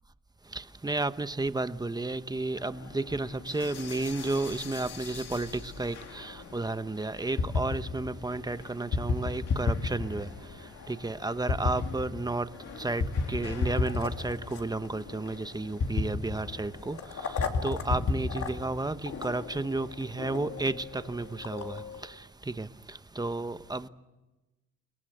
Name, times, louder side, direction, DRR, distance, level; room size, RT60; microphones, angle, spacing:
voice 1, 0.4-23.9, right 2 dB, 15° right, 1.0 m, -33 dB
sound 1, 2.6-22.0, left 4 dB, 60° left, 2.7 m, -35 dB
29.5 x 18.5 x 7.9 m
cardioid pair, 90°, 30 cm